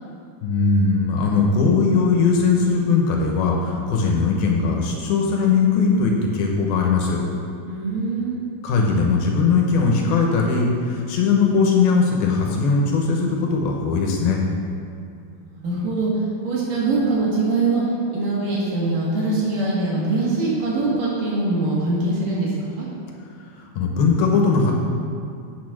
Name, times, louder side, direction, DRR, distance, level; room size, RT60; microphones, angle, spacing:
voice 1, 0.4-7.2 8.6-14.4 23.6-24.7, left 4 dB, 75° left, 0 dB, 2.7 m, -19 dB
voice 2, 7.6-8.4 15.3-16.1 16.4-17.8 18.1-22.9, right 3 dB, 60° right, -6 dB, 3.4 m, -23 dB
8.5 x 6.9 x 6.0 m, 2.5 s
omnidirectional pair, 4.6 m